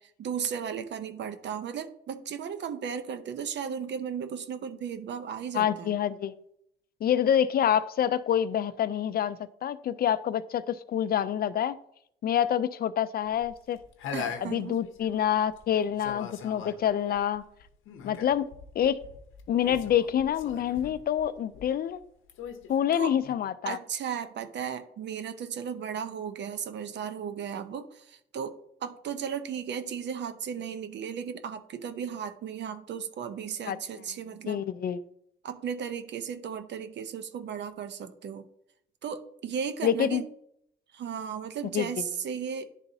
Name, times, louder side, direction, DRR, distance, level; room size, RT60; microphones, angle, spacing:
voice 1, 0.2-5.9 14.1-14.8 22.9-23.1 23.6-34.7 35.4-38.5 39.0-40.3 40.9-42.7, right 7 dB, 60° right, 10 dB, 0.7 m, -35 dB
voice 2, 5.5-6.3 7.0-9.4 9.6-11.8 12.2-13.8 14.4-17.4 18.0-18.5 18.8-19.0 19.5-22.0 22.7-23.8 33.7-33.8 34.5-35.0 39.8-40.2 41.7-41.9, left 9 dB, 50° left, 14 dB, 0.4 m, -27 dB
sound 1, 13.3-15.6 16.0-22.0 22.3-23.3, left 7 dB, 85° left, 0.7 m, -41 dB
10.5 x 3.9 x 2.7 m, 0.73 s
cardioid pair, 90°, 20 cm